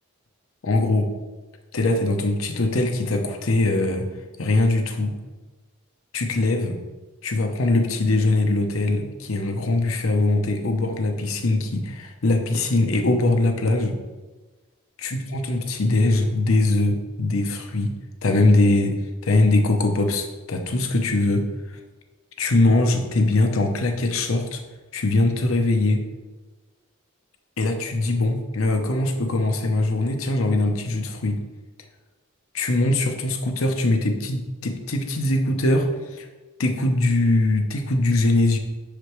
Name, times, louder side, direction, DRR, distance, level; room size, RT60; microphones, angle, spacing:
voice 1, 0.6-1.1 1.7-4.1 4.4-5.2 6.1-6.8 7.2-14.0 15.0-17.9 18.2-21.8 22.4-24.6 24.9-26.0 27.6-31.4 32.5-36.3 36.6-38.6, left 2 dB, 75° left, 5 dB, 0.8 m, -22 dB
6.7 x 5.0 x 3.1 m, 1.3 s
head